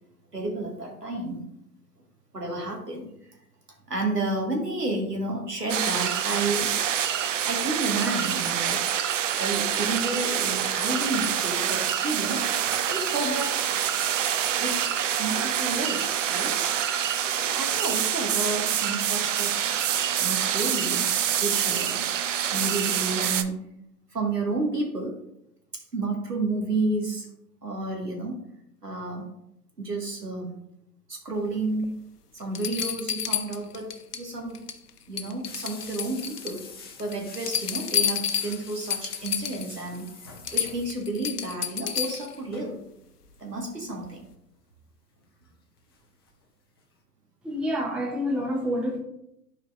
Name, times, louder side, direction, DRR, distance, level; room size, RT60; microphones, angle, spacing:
voice 1, 0.3-1.5 2.3-3.4 3.9-6.8 7.1-12.5 12.8-13.6 14.6-14.7 15.2-16.7 17.1-19.7 20.2-22.1 22.5-23.6 24.1-25.2 25.7-27.3 27.6-28.4 28.8-29.3 29.8-30.6 31.1-32.0 32.3-34.7 35.1-36.6 37.0-42.8 43.4-44.3, right 2 dB, 90° right, 1 dB, 1.8 m, -31 dB
sound 1, 5.7-23.4, right 9 dB, 55° right, 0.6 m, -26 dB
sound 2, 31.8-31.9 32.5-34.3 34.5-34.9 35.2-36.6 37.0-39.7 40.1-40.2 40.4-42.4 44.0-44.1, left 8 dB, 75° left, 0.7 m, -30 dB
sound 3, 35.4-41.3 41.6-41.7 41.9-42.8 43.9-44.1 44.7-46.0 46.3-46.4 46.8-46.9, left 4 dB, 20° left, 0.3 m, -46 dB
voice 2, 47.4-49.0, equal, ahead, 0 dB, 0.7 m, -28 dB
11.0 x 4.4 x 2.5 m, 0.79 s
figure-of-eight pair, 110°, 46 cm